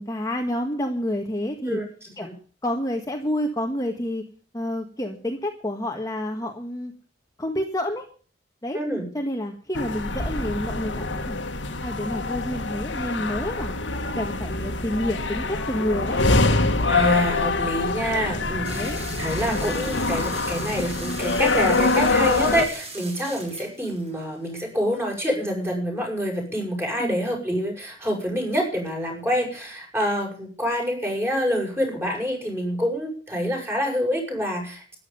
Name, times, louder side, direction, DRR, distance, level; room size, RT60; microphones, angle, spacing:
voice 1, 0.0-1.8 2.2-2.3 2.6-4.2 4.5-6.9 7.4-8.1 8.6-8.8 9.1-11.4 11.8-13.7 14.2-16.2 18.6-19.0 27.0-27.2, left 1 dB, 20° left, 2 dB, 1.7 m, -29 dB
voice 2, 8.7-9.1 16.9-18.9 19.2-34.8, equal, 15° right, 1 dB, 7.0 m, -26 dB
sound 1, 9.7-22.7, left 3 dB, 90° left, 2.0 m, -25 dB
sound 2, 18.6-24.5, right 3 dB, 35° right, 7.5 m, -39 dB
13.5 x 11.0 x 7.0 m, 0.42 s
head